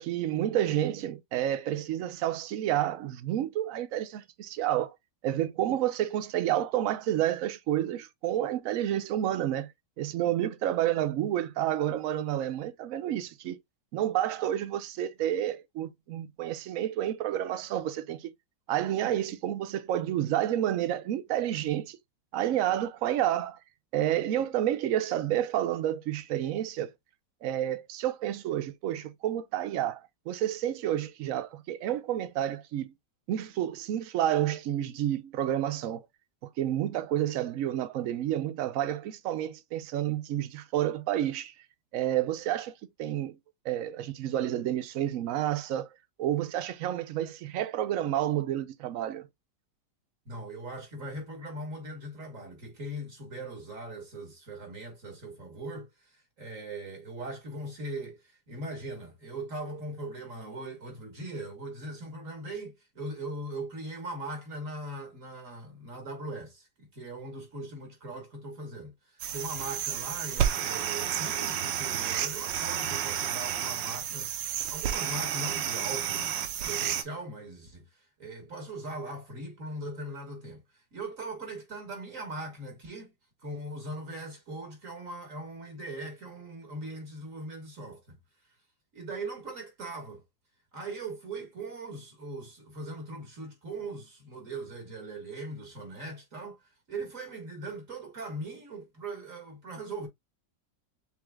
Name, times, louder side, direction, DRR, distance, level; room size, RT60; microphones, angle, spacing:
voice 1, 0.0-4.9 5.2-9.7 10.0-13.6 13.9-18.3 18.7-22.0 22.3-23.6 23.9-26.9 27.4-30.0 30.3-32.9 33.3-36.0 36.6-41.5 41.9-42.7 43.0-43.4 43.6-45.9 46.2-49.3, right 12 dB, 65° right, 0.8 m, -30 dB
voice 2, 50.3-76.3 76.6-77.8 78.2-80.6 80.9-83.1 83.4-88.2 88.9-90.2 90.7-96.6 96.9-100.1, right 2 dB, 50° right, 1.7 m, -40 dB
sound 1, 69.2-77.0, right 9 dB, 90° right, 1.4 m, -31 dB
7.0 x 3.2 x 2.2 m
omnidirectional pair, 1.9 m